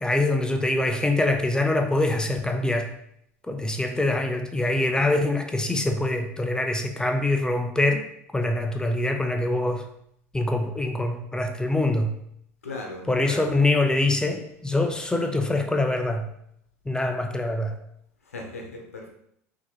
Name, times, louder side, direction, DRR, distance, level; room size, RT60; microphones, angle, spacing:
voice 1, 0.0-2.9 3.5-8.1 8.3-9.8 10.3-12.1 13.1-16.3 16.9-17.8, left 2 dB, 10° left, 5 dB, 0.6 m, -24 dB
voice 2, 12.6-13.4 18.3-19.1, left 2 dB, 85° left, 1 dB, 0.9 m, -37 dB
5.7 x 2.9 x 3.1 m, 0.72 s
hypercardioid pair, 75°, 8 cm